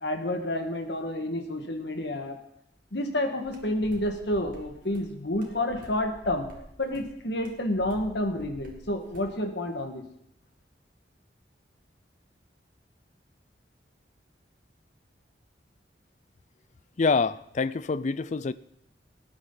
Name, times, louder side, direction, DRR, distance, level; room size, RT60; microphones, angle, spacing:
voice 1, 0.0-2.4 2.9-10.0, left 1 dB, 70° left, 5 dB, 1.7 m, -30 dB
sound 1, 3.4-9.4, right 1 dB, 50° right, 2.5 m, -49 dB
voice 2, 17.0-18.5, left 4 dB, 40° left, 16 dB, 0.4 m, -26 dB
18.5 x 9.7 x 4.0 m, 0.75 s
head